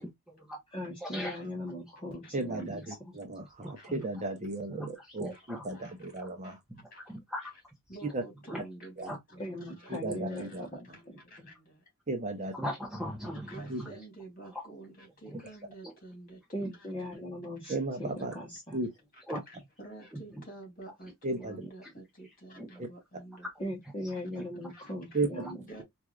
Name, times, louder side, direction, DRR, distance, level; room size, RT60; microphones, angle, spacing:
voice 1, 0.0-0.6 1.0-1.4 3.6-4.0 4.7-5.7 6.2-6.3 6.7-7.5 8.5-8.6 9.1-9.2 12.5-13.6 15.8-15.9 19.3-19.4 22.6-22.9 24.4-24.5, equal, 5° right, 0.9 m, -39 dB
voice 2, 0.7-3.2 9.4-10.9 11.4-11.5 16.5-18.8 23.6-25.8, left 1 dB, 25° left, 1.2 m, -39 dB
voice 3, 2.3-6.6 8.1-8.2 9.0-9.1 9.9-10.6 12.1-12.5 13.7-13.8 17.7-18.3 18.7-18.9 21.2-21.6 25.1-25.3, right 2 dB, 30° right, 0.8 m, -34 dB
voice 4, 5.7-6.1 6.4-7.0 7.4-7.5 7.9-11.8 13.5-16.9 17.6-17.9 19.1-23.5 24.7-25.3 25.7-25.8, right 2 dB, 40° left, 2.8 m, -50 dB
4.5 x 2.6 x 2.4 m
head